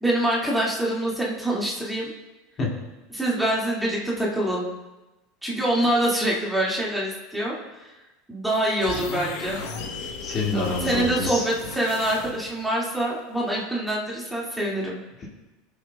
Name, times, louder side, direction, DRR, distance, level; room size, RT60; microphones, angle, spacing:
voice 1, 0.0-2.1 3.1-4.7 5.4-7.9 8.3-9.6 10.8-15.0, right 1 dB, 5° right, -5 dB, 2.1 m, -25 dB
sound 1, 8.8-12.7, left 4 dB, 75° left, 1.2 m, -35 dB
voice 2, 10.2-11.4 15.2-15.3, left 2 dB, 35° left, -3 dB, 2.1 m, -27 dB
20.5 x 7.3 x 2.3 m, 1.1 s
supercardioid pair, 120°, 0 cm